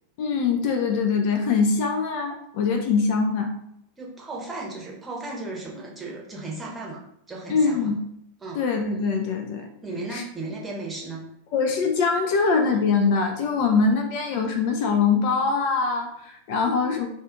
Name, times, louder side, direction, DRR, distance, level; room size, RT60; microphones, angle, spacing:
voice 1, 0.2-3.5 7.5-8.0 8.6-9.7 10.1-10.2 11.5-17.1, left 5 dB, 45° left, 4 dB, 0.4 m, -23 dB
voice 2, 4.0-7.0 7.3-7.9 8.4-8.6 9.8-11.3, right 2 dB, 15° right, -3 dB, 0.9 m, -35 dB
2.5 x 2.4 x 3.6 m, 0.77 s
figure-of-eight pair, 90°, 0 cm